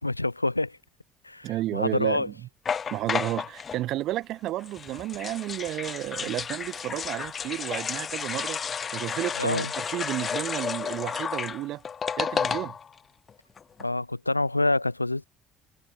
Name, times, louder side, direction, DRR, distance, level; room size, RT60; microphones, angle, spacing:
voice 1, 0.0-0.8 1.2-2.3 9.4-9.7 13.8-15.2, left 2 dB, 90° left, 3.6 m, -27 dB
voice 2, 1.4-2.3 2.9-11.8 12.2-12.8, right 15 dB, 55° right, 7.2 m, -32 dB
sound 1, 2.7-3.8 4.6-13.0 13.3-13.4 13.6-13.9, left 6 dB, 35° left, 2.6 m, -32 dB
figure-of-eight pair, 55°, 0 cm